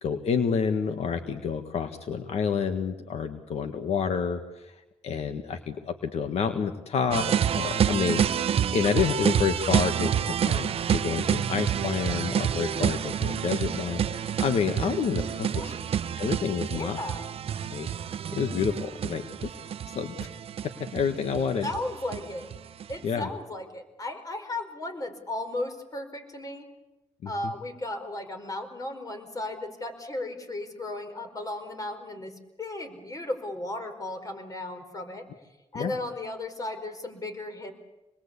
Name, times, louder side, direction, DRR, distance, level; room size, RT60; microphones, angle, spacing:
voice 1, 0.0-15.7 16.2-17.0 17.7-17.9 18.3-19.5 19.9-20.3 20.9-21.7 23.0-23.3 27.2-27.5 35.7-36.0, left 6 dB, 70° left, 7 dB, 1.7 m, -29 dB
sound 1, 7.1-23.0, right 9 dB, 60° right, 0.8 m, -28 dB
voice 2, 16.7-17.3 21.6-22.5 22.9-26.7 27.2-32.3 32.6-35.3 35.7-37.7, left 2 dB, 30° left, 6 dB, 5.0 m, -35 dB
27.0 x 21.0 x 8.4 m, 1.1 s
cardioid pair, 95°, 11 cm